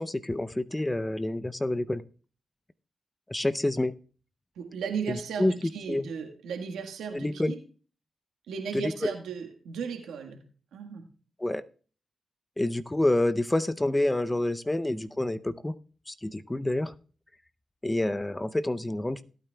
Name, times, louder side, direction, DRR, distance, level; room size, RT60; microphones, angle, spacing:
voice 1, 0.0-2.0 3.3-3.9 5.1-5.5 5.9-6.1 7.1-7.5 8.7-9.1 11.4-11.6 12.6-15.7 16.1-16.9 17.8-19.2, left 1 dB, 20° left, 13 dB, 0.6 m, -28 dB
voice 2, 4.5-7.6 8.5-10.4 10.7-11.0, right 6 dB, 90° right, 3 dB, 1.6 m, -36 dB
17.5 x 8.9 x 2.3 m, 0.38 s
supercardioid pair, 45°, 0 cm